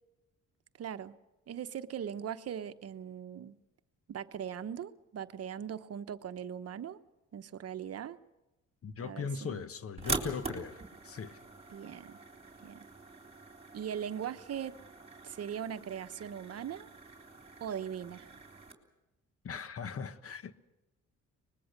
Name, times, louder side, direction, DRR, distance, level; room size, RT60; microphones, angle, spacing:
voice 1, 0.8-1.2 1.5-3.6 4.1-7.0 7.3-8.2 9.0-9.6 11.7-12.2 12.6-12.9 13.7-14.8 15.2-16.9 17.6-18.3, right 8 dB, 55° right, 0.9 m, -40 dB
voice 2, 8.8-11.4 19.4-20.6, left 6 dB, 50° left, 1.3 m, -39 dB
sound 1, 10.0-18.7, right 3 dB, 20° right, 3.4 m, -43 dB
24.0 x 21.0 x 6.6 m
cardioid pair, 90°, 30 cm